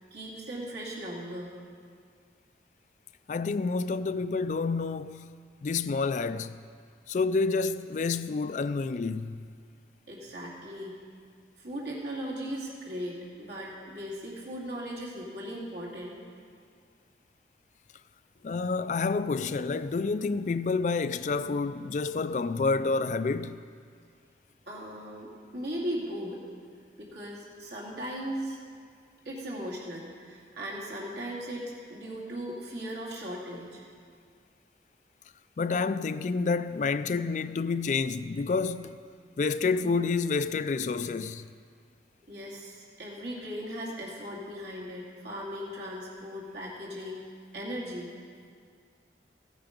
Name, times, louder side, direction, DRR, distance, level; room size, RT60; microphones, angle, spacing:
voice 1, 0.1-1.5 10.1-11.0 11.6-16.2 24.7-26.4 27.0-28.6 29.2-33.8 42.3-48.1, equal, 75° right, 2.6 m, -38 dB
voice 2, 3.3-5.3 5.6-6.5 7.1-9.4 18.4-23.6 35.6-39.0 39.4-41.4, left 4 dB, 45° left, 0.3 m, -29 dB
15.0 x 9.2 x 5.2 m
head